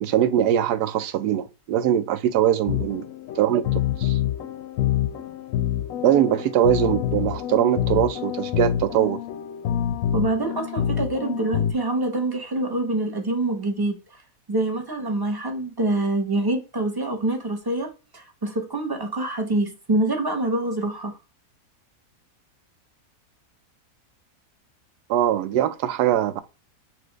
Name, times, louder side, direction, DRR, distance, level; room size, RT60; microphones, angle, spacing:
voice 1, 0.0-3.1 3.3-4.2 6.0-9.2 25.1-26.4, right 11 dB, 80° right, 1.2 m, -22 dB
sound 1, 2.7-11.7, left 10 dB, 70° left, 0.8 m, -27 dB
voice 2, 10.1-14.0 14.5-17.9 18.1-21.1, right 2 dB, 20° right, 0.6 m, -25 dB
5.9 x 2.6 x 3.1 m
omnidirectional pair, 1.7 m